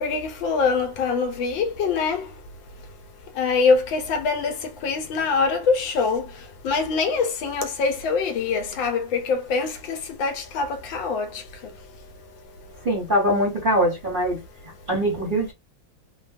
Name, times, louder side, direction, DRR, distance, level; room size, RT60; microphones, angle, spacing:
voice 1, 0.0-2.2 3.4-4.5 4.8-6.2 6.6-11.3, left 4 dB, 75° left, 1.3 m, -24 dB
voice 2, 12.8-14.4 14.9-15.5, equal, 35° right, 0.9 m, -22 dB
3.3 x 2.2 x 2.4 m
omnidirectional pair, 2.2 m